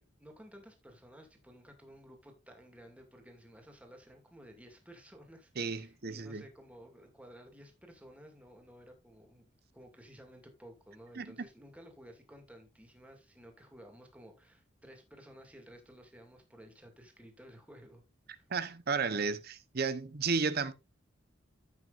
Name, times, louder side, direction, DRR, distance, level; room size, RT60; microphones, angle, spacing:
voice 1, 0.0-9.5 9.7-18.0 18.3-18.5, equal, 5° right, 2.3 m, -55 dB
voice 2, 5.6-6.4 11.2-11.3 18.5-20.7, right 5 dB, 55° right, 0.8 m, -33 dB
14.5 x 6.2 x 2.5 m
head